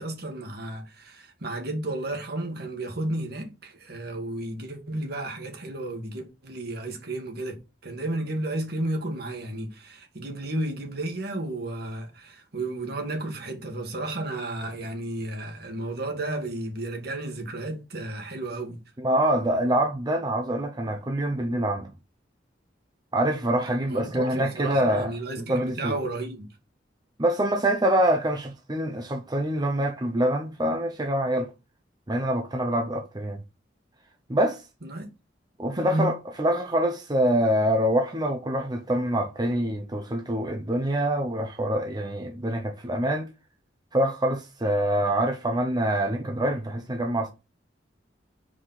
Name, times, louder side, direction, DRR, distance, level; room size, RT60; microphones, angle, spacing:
voice 1, 0.0-7.6 7.8-18.8 23.9-26.5 34.8-35.1 35.8-36.1, right 1 dB, 60° right, 1.8 m, -32 dB
voice 2, 19.0-21.9 23.1-25.1 25.5-25.9 27.2-31.5 32.1-33.4 34.3-34.6 35.6-43.3 43.9-47.3, right 1 dB, 25° right, 0.7 m, -25 dB
4.9 x 4.2 x 5.7 m
head